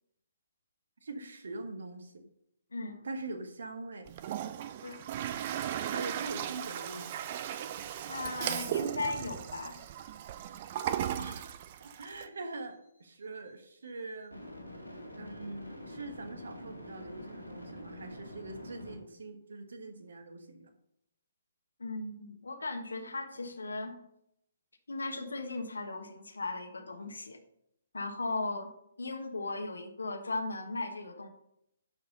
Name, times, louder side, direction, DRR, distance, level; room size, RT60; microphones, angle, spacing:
voice 1, 1.0-2.3 3.0-4.1 5.9-7.4 11.2-14.4 15.1-20.7, right 3 dB, 60° right, 7 dB, 1.4 m, -43 dB
voice 2, 2.7-3.0 4.8-5.0 8.0-9.8 21.8-24.0 24.9-27.4 27.9-28.7 29.0-31.3, left 3 dB, 70° left, 5 dB, 1.4 m, -37 dB
Toilet flush, 4.1-12.2, right 10 dB, 35° right, 0.6 m, -36 dB
sound 1, 14.3-18.9, left 1 dB, 85° right, 2.2 m, -46 dB
12.0 x 4.8 x 5.4 m, 0.77 s
figure-of-eight pair, 130°, 0 cm